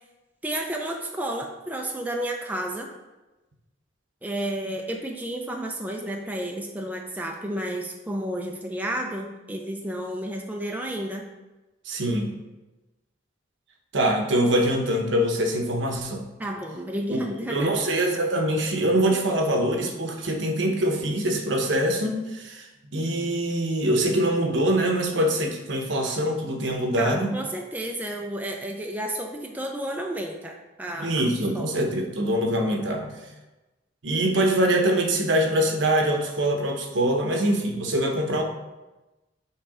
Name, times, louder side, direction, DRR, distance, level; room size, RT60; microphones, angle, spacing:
voice 1, 0.4-2.9 4.2-11.3 16.4-17.7 27.0-31.3 31.5-31.7, right 1 dB, 10° right, 1 dB, 0.4 m, -31 dB
voice 2, 11.9-12.3 13.9-16.2 17.1-17.2 17.5-27.3 31.0-33.2 34.0-38.4, right 1 dB, 65° right, 3 dB, 0.9 m, -24 dB
7.6 x 3.3 x 4.8 m, 1.1 s
head